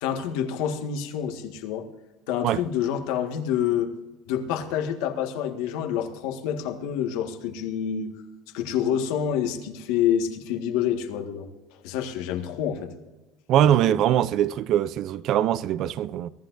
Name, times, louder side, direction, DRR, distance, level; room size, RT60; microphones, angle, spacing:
voice 1, 0.0-1.9 2.3-3.9 4.3-8.2 8.5-11.5 11.8-12.9 13.6-14.0, left 9 dB, 80° left, 1.7 m, -27 dB
voice 2, 13.5-16.3, right 11 dB, 45° right, 0.5 m, -22 dB
23.0 x 14.0 x 2.6 m
cardioid pair, 175°, 0 cm